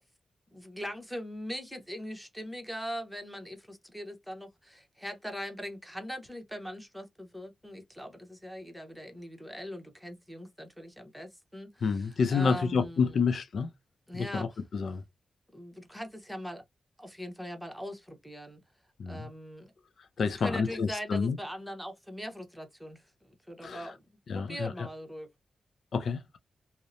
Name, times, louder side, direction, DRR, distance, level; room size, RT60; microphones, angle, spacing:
voice 1, 0.5-13.2 14.1-14.6 15.5-16.6 17.0-18.6 19.1-19.7 20.2-24.0 24.3-25.3, equal, ahead, 0.9 m, -41 dB
voice 2, 11.8-13.7 14.1-15.0 19.0-19.3 20.2-21.4 23.6-23.9 24.3-24.9 25.9-26.4, left 5 dB, 70° left, 0.4 m, -29 dB
2.7 x 2.0 x 2.4 m
cardioid pair, 75°, 0 cm